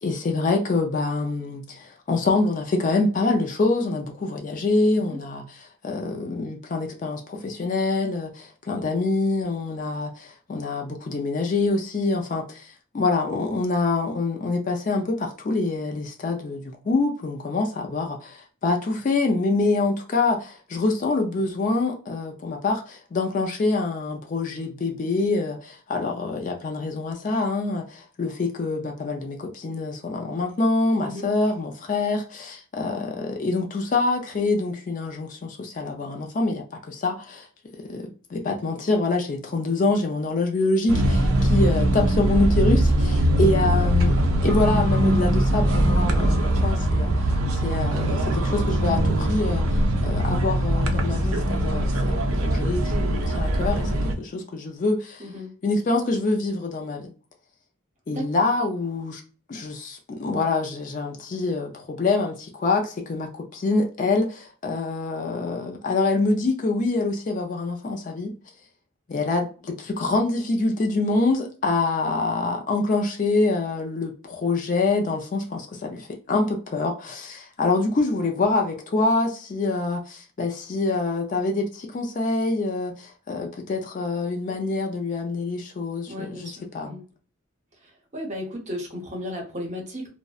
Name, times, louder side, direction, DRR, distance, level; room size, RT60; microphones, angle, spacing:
voice 1, 0.0-37.5 37.8-38.0 38.3-44.1 44.4-47.1 47.6-53.9 54.2-55.2 55.6-57.1 58.1-59.2 59.5-68.3 69.1-87.0, left 3 dB, 35° left, 0.3 m, -25 dB
sound 1, 40.9-54.1, right 1 dB, 85° right, 0.4 m, -21 dB
voice 2, 55.2-55.5 58.1-58.3 86.1-87.0 88.1-90.1, left 1 dB, 35° right, 0.7 m, -34 dB
2.6 x 2.0 x 2.3 m
head